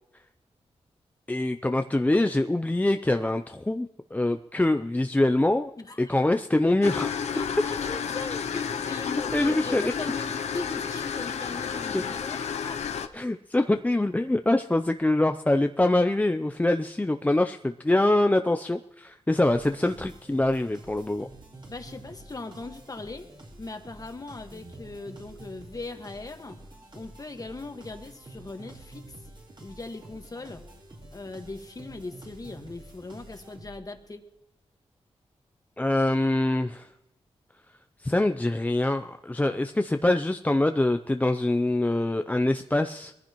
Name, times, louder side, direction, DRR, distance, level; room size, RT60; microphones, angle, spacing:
voice 1, 1.3-5.7 6.0-7.1 9.3-9.9 11.9-12.0 13.1-21.3 35.8-36.9 38.0-43.1, left 1 dB, 15° left, 6 dB, 0.5 m, -24 dB
voice 2, 5.8-6.2 7.3-12.8 21.7-23.3 23.6-26.6 26.9-29.2 29.6-30.6 31.1-34.2, left 3 dB, 35° left, 6 dB, 1.6 m, -39 dB
sound 1, 6.8-13.1, left 7 dB, 90° left, 0.6 m, -31 dB
sound 2, 19.4-34.0, right 2 dB, 45° right, 4.3 m, -48 dB
21.0 x 14.5 x 3.0 m, 0.92 s
cardioid pair, 75°, 11 cm